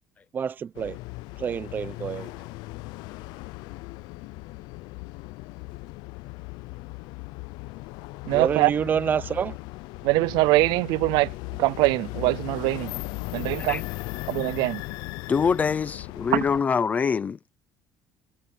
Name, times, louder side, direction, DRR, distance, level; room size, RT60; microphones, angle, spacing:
voice 1, 0.3-1.0 1.4-2.3 8.3-9.6, right 7 dB, 25° right, 0.7 m, -27 dB
sound 1, 0.7-16.6, left 22 dB, 85° left, 0.5 m, -37 dB
voice 2, 8.3-8.7 10.1-11.3 11.6-12.8 13.5-13.8 14.4-14.8, right 21 dB, 85° right, 0.5 m, -22 dB
voice 3, 15.3-17.5, left 6 dB, 20° left, 0.7 m, -24 dB
cardioid pair, 175°, 7 cm